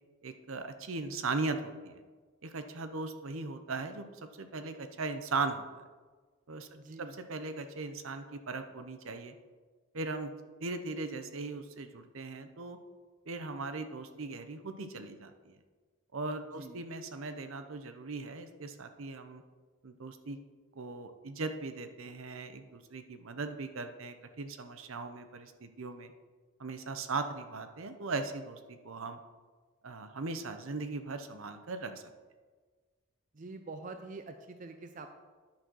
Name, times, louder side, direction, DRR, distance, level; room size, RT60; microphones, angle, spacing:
voice 1, 0.2-2.0 2.4-4.0 4.4-5.6 6.5-6.7 7.0-9.3 9.9-10.3 10.6-12.8 13.3-15.6 16.1-19.4 19.8-20.4 20.8-26.1 26.6-29.2 29.8-31.9, right 3 dB, 75° right, 8 dB, 0.7 m, -38 dB
voice 2, 6.7-7.2 16.5-16.8 33.3-35.1, right 3 dB, 40° right, 6 dB, 0.4 m, -45 dB
10.5 x 4.2 x 6.1 m, 1.4 s
head